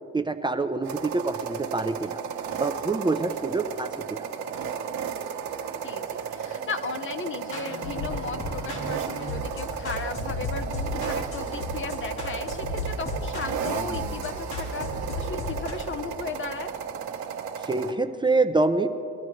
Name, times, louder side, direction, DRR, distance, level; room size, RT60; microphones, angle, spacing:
voice 1, 0.1-2.2 2.6-4.3 17.6-18.9, right 3 dB, 15° right, 8 dB, 0.6 m, -26 dB
sound 1, 0.8-17.9, right 7 dB, 70° right, 1.2 m, -34 dB
voice 2, 5.8-16.7, left 5 dB, 40° left, 10 dB, 0.9 m, -36 dB
sound 2, 7.4-15.7, left 2 dB, 75° left, 3.7 m, -34 dB
22.0 x 12.5 x 3.2 m, 2.7 s
supercardioid pair, 75°, 30 cm